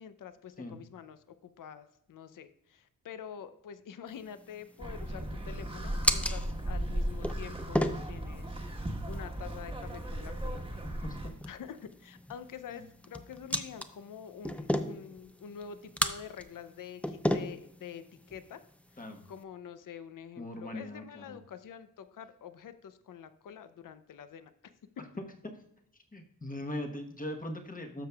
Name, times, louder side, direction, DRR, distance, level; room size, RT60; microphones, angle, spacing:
voice 1, 0.0-10.7 11.5-18.6 18.9-24.5, left 8 dB, 70° left, 12 dB, 0.6 m, -47 dB
sound 1, 4.1-19.4, left 1 dB, 5° left, 0.4 m, -37 dB
sound 2, 4.8-11.3, right 1 dB, 15° right, 1.2 m, -36 dB
voice 2, 11.0-11.3 12.7-12.9 19.0-19.2 20.4-21.4 26.1-28.1, left 1 dB, 25° left, 3 dB, 1.1 m, -40 dB
12.5 x 6.6 x 2.3 m, 0.77 s
wide cardioid pair, 110°, 34 cm